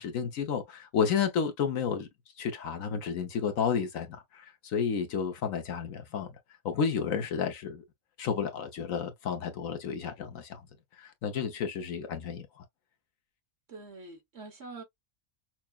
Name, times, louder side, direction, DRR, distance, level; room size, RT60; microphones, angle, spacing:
voice 1, 0.0-2.1 2.4-6.4 6.6-7.8 8.2-10.6 11.0-12.6, left 6 dB, 70° left, 1.2 m, -31 dB
voice 2, 13.7-14.8, right 3 dB, 50° right, 1.5 m, -45 dB
5.8 x 2.1 x 2.3 m
omnidirectional pair, 1.5 m